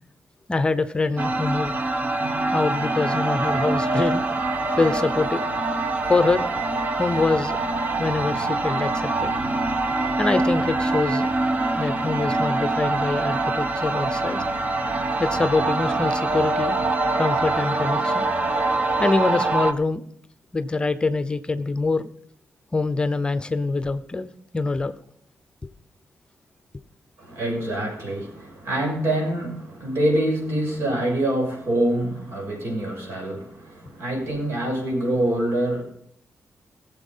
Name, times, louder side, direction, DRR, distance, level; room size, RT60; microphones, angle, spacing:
voice 1, 0.5-1.7 2.5-4.2 4.8-5.4 6.1-6.5 7.0-7.6 8.0-9.3 10.2-11.3 11.8-14.4 15.2-16.8 17.2-18.3 19.0-20.1 20.5-22.1 22.7-24.3 24.5-24.9, left 3 dB, 20° left, 13 dB, 0.7 m, -24 dB
sound 1, 1.2-19.7, right 2 dB, 35° right, 1.2 m, -24 dB
voice 2, 27.2-35.8, right 1 dB, 75° right, 0 dB, 6.0 m, -25 dB
19.5 x 7.3 x 5.5 m, 0.68 s
wide cardioid pair, 125°, 4 cm